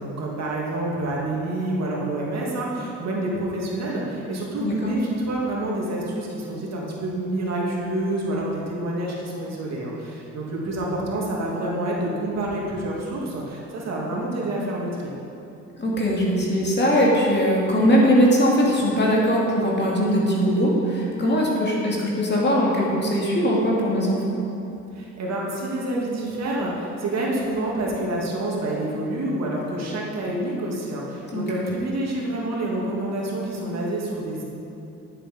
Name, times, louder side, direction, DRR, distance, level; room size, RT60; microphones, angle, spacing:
voice 1, 0.0-15.1 24.9-34.4, right 1 dB, 60° right, -3 dB, 2.3 m, -28 dB
voice 2, 15.8-24.4 31.3-31.7, equal, 35° left, -3 dB, 2.4 m, -20 dB
10.5 x 7.4 x 5.3 m, 2.7 s
cardioid pair, 90°, 30 cm